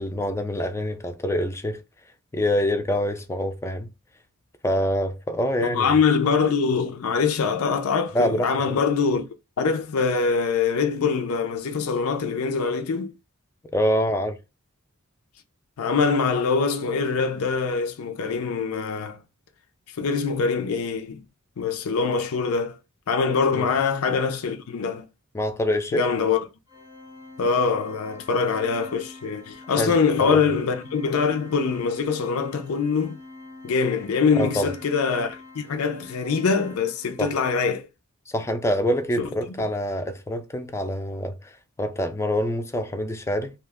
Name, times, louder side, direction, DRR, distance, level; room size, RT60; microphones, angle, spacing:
voice 1, 0.0-1.8 2.3-3.9 4.6-6.0 8.1-8.8 13.7-14.4 23.5-23.7 25.3-26.0 29.8-30.4 34.3-34.7 37.2-37.3 38.3-43.5, equal, 15° left, 0.3 m, -26 dB
voice 2, 5.7-9.3 9.6-13.1 15.8-19.2 20.0-21.2 21.6-22.8 23.1-25.0 25.9-26.4 27.4-33.2 33.6-37.9 39.2-39.3, left 5 dB, 85° left, 0.5 m, -23 dB
Organ, 26.7-37.4, left 2 dB, 20° right, 0.7 m, -45 dB
2.8 x 2.2 x 3.3 m
head